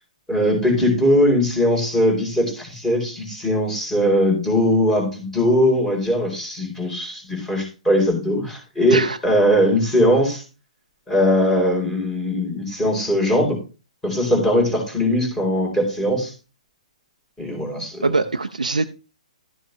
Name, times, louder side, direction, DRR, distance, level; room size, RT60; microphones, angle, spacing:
voice 1, 0.3-10.4 11.1-13.6 14.0-16.3 17.4-18.1, equal, 10° left, 4.2 m, -20 dB
voice 2, 18.0-18.8, right 3 dB, 80° right, 0.6 m, -22 dB
13.0 x 7.3 x 3.2 m
figure-of-eight pair, 120°, 4 cm